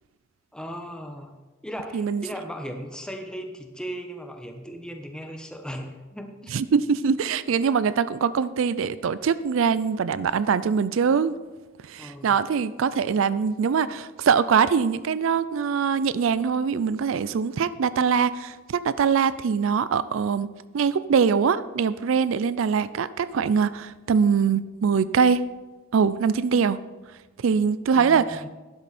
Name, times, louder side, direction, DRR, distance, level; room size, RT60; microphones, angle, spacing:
voice 1, 0.5-1.4 1.6-6.5 12.0-12.3 27.9-28.5, equal, 5° left, 4 dB, 1.0 m, -37 dB
voice 2, 1.9-2.2 6.5-11.4 11.8-20.5 20.7-25.4 25.9-26.8 27.4-28.5, right 6 dB, 70° right, 16 dB, 0.4 m, -23 dB
12.0 x 10.5 x 4.2 m, 1.2 s
head